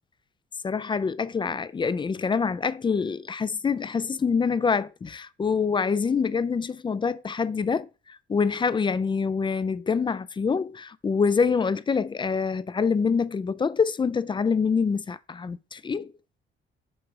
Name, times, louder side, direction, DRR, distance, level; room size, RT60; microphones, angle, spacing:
voice 1, 0.6-16.1, left 5 dB, 25° left, 0.4 m, -26 dB
6.2 x 3.6 x 4.8 m
cardioid pair, 90°, 20 cm